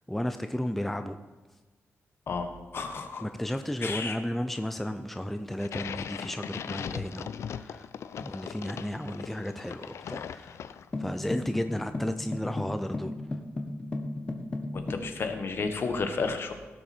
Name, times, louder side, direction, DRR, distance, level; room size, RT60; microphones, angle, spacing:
voice 1, 0.1-1.2 3.2-7.9 8.2-10.6 11.0-13.1, left 1 dB, 5° left, 8 dB, 0.4 m, -33 dB
voice 2, 2.3-3.2 3.8-4.2 8.1-8.2 14.7-16.5, left 4 dB, 50° left, 6 dB, 1.3 m, -32 dB
sound 1, 5.6-11.1, left 7 dB, 70° left, 0.5 m, -39 dB
sound 2, 10.9-15.1, left 2 dB, 25° left, 1.1 m, -35 dB
17.0 x 7.1 x 4.4 m, 1.3 s
wide cardioid pair, 150°, 5 cm